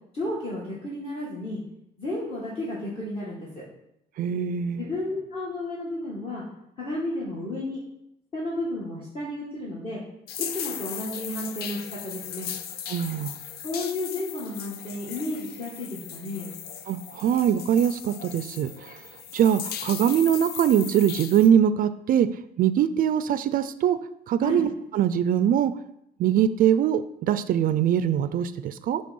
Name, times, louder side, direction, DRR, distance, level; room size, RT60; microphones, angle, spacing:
voice 1, 0.1-1.6 2.0-3.6 4.8-6.4 6.8-7.8 8.3-10.0 10.5-12.5 13.6-16.5 24.4-24.6, left 1 dB, 35° left, -6 dB, 2.1 m, -32 dB
voice 2, 4.2-4.9 12.9-13.3 16.9-19.0 19.3-22.3 22.6-24.0 24.3-25.7 26.2-29.0, right 9 dB, 55° right, 12 dB, 0.4 m, -22 dB
sound 1, 10.3-21.5, left 8 dB, 70° left, 0.6 m, -37 dB
7.7 x 3.5 x 5.4 m, 0.80 s
cardioid pair, 110°, 17 cm